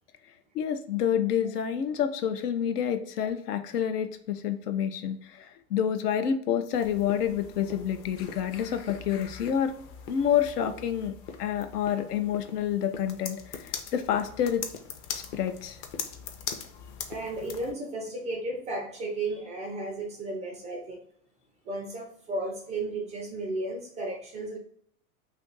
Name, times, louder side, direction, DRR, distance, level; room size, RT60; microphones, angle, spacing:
voice 1, 0.5-9.7 10.1-11.1 11.4-14.7 15.1-15.8, left 9 dB, 85° left, 8 dB, 0.6 m, -28 dB
sound 1, 6.7-17.7, left 7 dB, 40° left, 0.6 m, -41 dB
voice 2, 17.1-21.1 21.6-24.6, right 2 dB, 15° right, 1 dB, 0.3 m, -34 dB
2.6 x 2.5 x 3.8 m, 0.67 s
hypercardioid pair, 100°, 46 cm